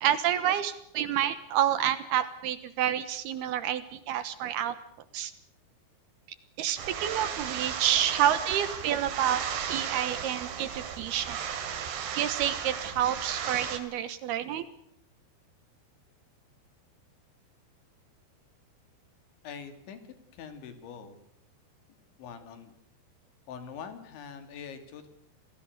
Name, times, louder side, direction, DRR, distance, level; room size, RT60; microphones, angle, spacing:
voice 1, 0.0-4.8 5.1-5.3 6.6-9.4 9.7-11.4 12.2-14.6, right 10 dB, 70° right, 13 dB, 2.9 m, -28 dB
sound 1, 6.8-13.8, right 8 dB, 90° right, 4.8 m, -35 dB
voice 2, 19.4-20.0 20.3-21.2 22.2-22.7 23.5-25.1, left 6 dB, 85° left, 9 dB, 5.1 m, -43 dB
27.5 x 19.5 x 6.8 m, 0.71 s
omnidirectional pair, 5.2 m